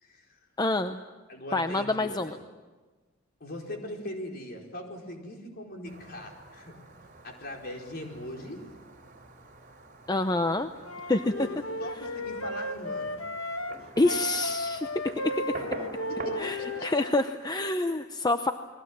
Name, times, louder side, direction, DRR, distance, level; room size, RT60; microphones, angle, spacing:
voice 1, 0.6-1.0 1.5-2.4 10.1-10.7 11.1-11.3 14.0-14.9 15.2-15.3 16.4-18.5, left 2 dB, 20° left, 8 dB, 0.7 m, -27 dB
voice 2, 1.3-2.4 3.4-6.7 7.2-8.6 11.4-13.2 16.1-16.9, left 1 dB, 50° left, 1 dB, 4.6 m, -40 dB
Fireworks, 5.8-16.8, right 3 dB, 45° right, 3.4 m, -46 dB
Wind instrument woodwind instrument, 10.8-13.8 14.0-17.2, left 1 dB, 90° left, 1.5 m, -34 dB
30.0 x 21.0 x 7.5 m, 1.3 s
head